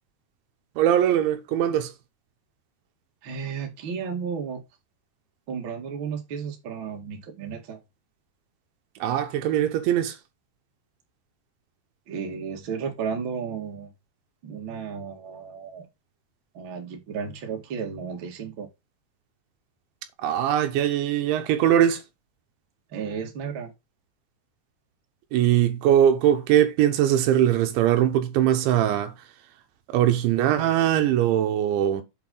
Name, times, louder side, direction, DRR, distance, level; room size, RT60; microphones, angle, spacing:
voice 1, 0.8-1.9 9.0-10.2 20.2-22.0 25.3-29.1 29.9-32.0, right 11 dB, 80° right, 3.3 m, -21 dB
voice 2, 3.2-4.6 5.5-7.8 12.1-13.9 14.4-15.9 16.5-18.7 22.9-23.7, right 6 dB, 55° right, 1.3 m, -33 dB
8.2 x 4.8 x 3.9 m
omnidirectional pair, 5.4 m